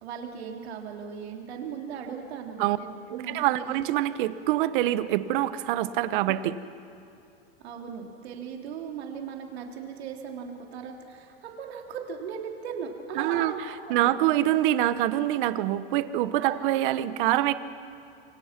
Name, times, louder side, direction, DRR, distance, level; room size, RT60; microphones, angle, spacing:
voice 1, 0.0-3.8 7.6-13.6 13.9-14.1 16.4-16.6, right 7 dB, 85° right, 2 dB, 3.3 m, -38 dB
voice 2, 3.1-6.6 13.1-13.5 13.9-17.5, right 14 dB, 55° right, 14 dB, 1.1 m, -25 dB
27.5 x 24.5 x 6.0 m, 2.6 s
supercardioid pair, 155°, 31 cm